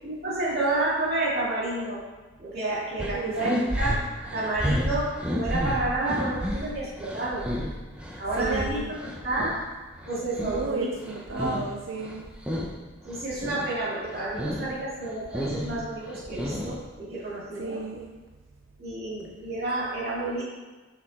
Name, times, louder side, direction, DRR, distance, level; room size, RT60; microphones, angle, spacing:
voice 1, 0.0-2.0 2.4-4.0 4.3-7.5 8.2-9.6 10.0-10.9 11.3-11.6 13.0-17.8 18.8-20.4, right 2 dB, 50° right, -7 dB, 2.7 m, -30 dB
sound 1, 3.0-9.6 10.0-11.7 12.0-12.8 13.1-13.7 14.1-14.7 15.0-16.9, equal, 5° right, 0.7 m, -31 dB
voice 2, 3.0-3.6 8.1-8.9 10.4-12.2 17.6-18.1, right 4 dB, 90° right, 1 dB, 0.6 m, -33 dB
6.7 x 6.4 x 4.3 m, 1.3 s
head